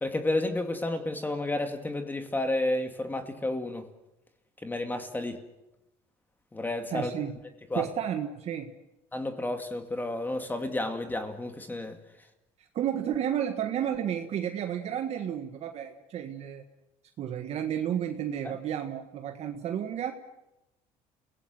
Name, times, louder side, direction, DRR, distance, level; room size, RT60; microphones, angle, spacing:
voice 1, 0.0-3.9 4.6-5.4 6.5-7.1 7.7-7.8 9.1-12.0, left 2 dB, 15° left, 6 dB, 2.2 m, -31 dB
voice 2, 6.9-7.3 7.7-8.7 12.8-16.6 17.2-20.1, right 9 dB, 55° right, 5 dB, 1.7 m, -32 dB
28.5 x 17.5 x 7.8 m, 0.94 s
supercardioid pair, 100°, 13 cm